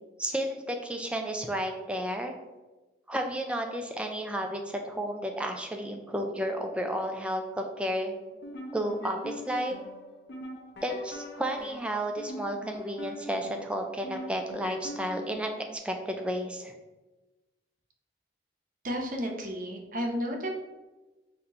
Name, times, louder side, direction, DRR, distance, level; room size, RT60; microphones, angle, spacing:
voice 1, 0.2-2.4 3.1-8.1 8.7-9.7 10.8-16.7, equal, 5° right, 3 dB, 0.4 m, -32 dB
sound 1, 8.3-15.8, left 1 dB, 75° left, 0.7 m, -42 dB
voice 2, 18.8-20.5, equal, 50° right, 1 dB, 0.7 m, -32 dB
4.3 x 2.6 x 4.1 m, 1.1 s
head